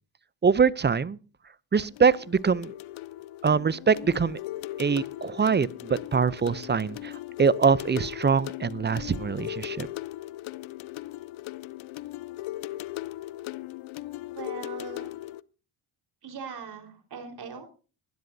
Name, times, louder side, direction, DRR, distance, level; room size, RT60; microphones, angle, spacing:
voice 1, 0.4-1.2 1.7-2.7 3.4-4.4 4.8-9.9, right 5 dB, 20° right, 0.5 m, -24 dB
sound 1, 1.8-15.4, left 16 dB, 70° left, 0.6 m, -38 dB
voice 2, 14.3-15.1 16.2-17.6, right 5 dB, 50° right, 4.4 m, -40 dB
20.5 x 12.0 x 2.7 m
cardioid pair, 90°, 49 cm